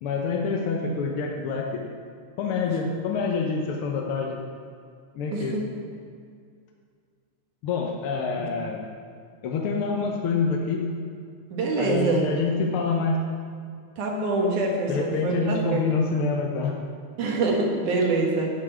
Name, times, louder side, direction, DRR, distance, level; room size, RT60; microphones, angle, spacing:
voice 1, 0.0-1.8 2.4-4.4 5.1-5.6 7.6-8.8 9.4-10.9 11.8-13.2 14.9-16.8, left 4 dB, 65° left, 0 dB, 1.4 m, -26 dB
voice 2, 5.3-5.6 11.5-12.3 14.0-15.8 17.2-18.5, right 3 dB, 80° right, 0 dB, 3.0 m, -25 dB
8.7 x 7.4 x 9.0 m, 2.2 s
omnidirectional pair, 3.5 m